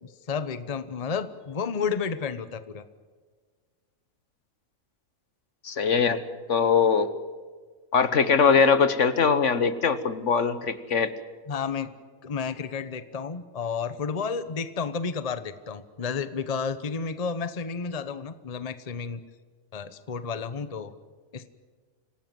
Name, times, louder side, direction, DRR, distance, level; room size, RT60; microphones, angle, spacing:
voice 1, 0.0-2.8 11.5-11.9 12.2-19.2 19.7-20.9 21.3-21.5, left 5 dB, 30° left, 13 dB, 1.0 m, -31 dB
voice 2, 5.6-6.2 6.5-7.1 7.9-11.1, left 5 dB, 60° left, 13 dB, 1.5 m, -21 dB
26.5 x 17.5 x 7.7 m, 1.5 s
omnidirectional pair, 1.4 m